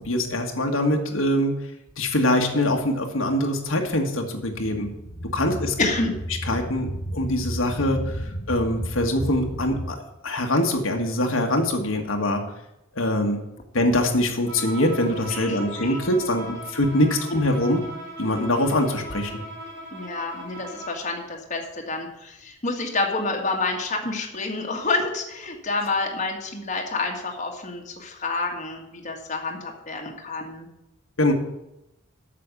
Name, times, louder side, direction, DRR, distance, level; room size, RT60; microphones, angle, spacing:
voice 1, 0.1-1.5 2.0-4.9 5.3-5.7 6.5-8.0 8.5-10.0 10.2-12.4 13.0-13.4 13.7-17.8 18.2-19.4 31.2-31.3, left 1 dB, 85° left, 2 dB, 1.6 m, -23 dB
sound 1, 4.5-9.9, equal, 55° left, 1.2 m, -33 dB
voice 2, 5.8-6.1 15.3-16.0 19.9-30.7, left 3 dB, 35° left, 1 dB, 1.7 m, -28 dB
Bowed string instrument, 14.5-21.1, right 1 dB, 65° right, 5.3 m, -38 dB
8.6 x 6.7 x 8.3 m, 0.88 s
head